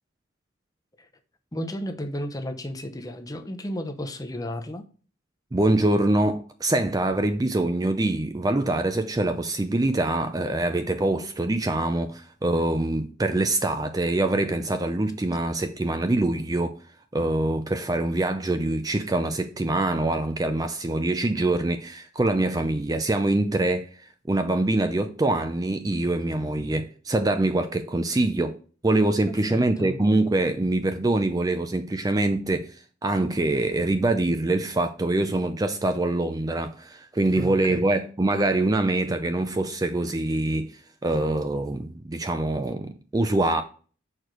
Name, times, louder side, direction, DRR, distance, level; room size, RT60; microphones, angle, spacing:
voice 1, 1.5-4.9 29.3-30.0 37.3-37.8, left 1 dB, 20° left, 0.7 m, -33 dB
voice 2, 5.5-16.8 17.1-23.9 24.3-28.6 28.8-32.8 33.0-43.6, right 2 dB, 20° right, 0.4 m, -24 dB
6.5 x 4.6 x 5.1 m
head